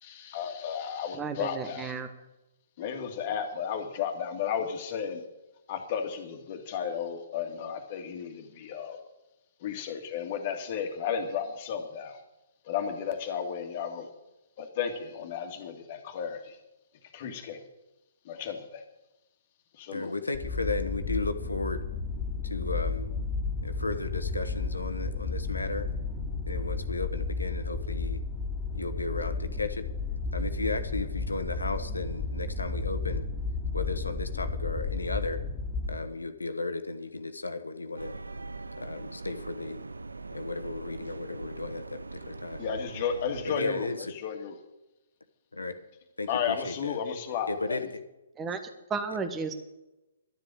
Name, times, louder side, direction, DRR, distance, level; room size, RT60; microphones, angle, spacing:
voice 1, 0.0-1.9 2.8-5.2 5.7-9.0 9.6-12.2 12.6-14.1 14.6-16.6 17.1-17.6 18.3-18.8 19.7-20.1 42.6-43.9 44.2-44.5 46.3-47.8, left 7 dB, 40° left, 5 dB, 2.0 m, -33 dB
voice 2, 1.1-2.1 48.4-48.6 48.9-49.5, right 5 dB, 15° right, 8 dB, 1.3 m, -33 dB
voice 3, 19.9-21.8 22.4-23.1 23.6-25.9 26.5-28.2 28.7-29.9 30.3-33.2 33.7-35.4 35.9-38.2 38.8-39.8 40.3-42.6 43.5-44.1 45.5-45.8 46.2-47.0 47.5-48.0, left 3 dB, 80° left, 8 dB, 1.3 m, -34 dB
sound 1, 20.3-36.0, left 4 dB, 5° left, 2.9 m, -33 dB
sound 2, 38.0-43.4, right 3 dB, 75° right, 0.5 m, -41 dB
12.0 x 7.7 x 8.8 m, 0.96 s
figure-of-eight pair, 125°, 0 cm